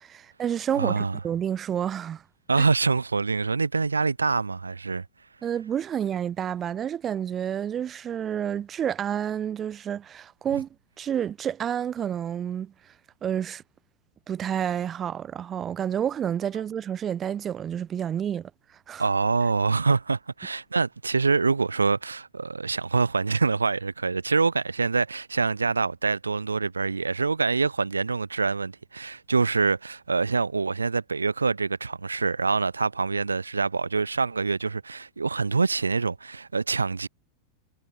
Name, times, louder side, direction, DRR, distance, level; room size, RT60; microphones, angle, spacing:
voice 1, 0.0-2.2 2.6-2.7 5.4-10.7 11.0-12.7 13.2-13.6 14.3-18.5 18.9-19.0, right 9 dB, 25° right, 1.2 m, -29 dB
voice 2, 0.8-1.2 2.5-5.0 19.0-37.1, right 4 dB, 75° right, 2.7 m, -25 dB
figure-of-eight pair, 90°, 0 cm